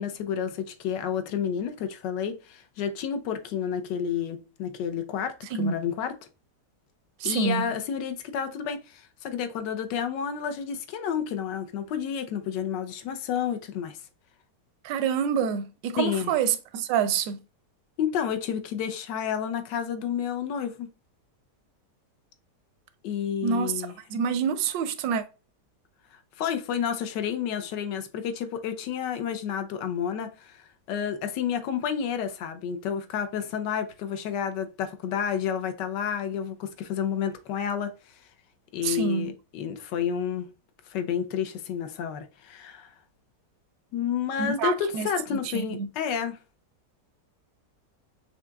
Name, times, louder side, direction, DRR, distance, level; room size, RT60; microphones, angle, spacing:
voice 1, 0.0-6.1 7.2-14.0 16.0-16.3 18.0-20.9 23.0-23.9 26.4-37.9 38.7-40.5 40.9-42.9 43.9-46.4, left 8 dB, 80° left, 1.3 m, -30 dB
voice 2, 7.2-7.7 14.8-17.4 23.4-23.7 24.1-25.2 38.8-39.3 44.4-45.1 45.5-45.9, right 7 dB, 85° right, 1.2 m, -27 dB
5.9 x 2.8 x 2.2 m
omnidirectional pair, 1.9 m